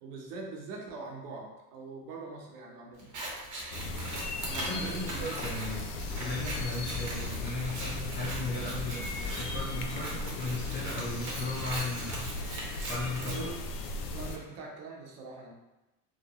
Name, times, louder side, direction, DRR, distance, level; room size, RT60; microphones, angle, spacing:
voice 1, 0.0-3.1 4.4-5.3 13.2-13.6 14.1-15.5, right 3 dB, 70° right, -1 dB, 0.9 m, -42 dB
Scissors, 3.0-13.4, right 2 dB, 40° right, 0.9 m, -41 dB
sound 1, 3.7-14.4, left 2 dB, 85° left, 0.5 m, -37 dB
voice 2, 4.7-5.8 6.2-9.0 9.3-12.3 12.9-13.5, left 2 dB, 20° left, -6 dB, 0.7 m, -36 dB
sound 2, 5.6-10.9, left 5 dB, 65° left, 1.2 m, -42 dB
2.8 x 2.1 x 2.9 m, 1.0 s
hypercardioid pair, 85°, 47 cm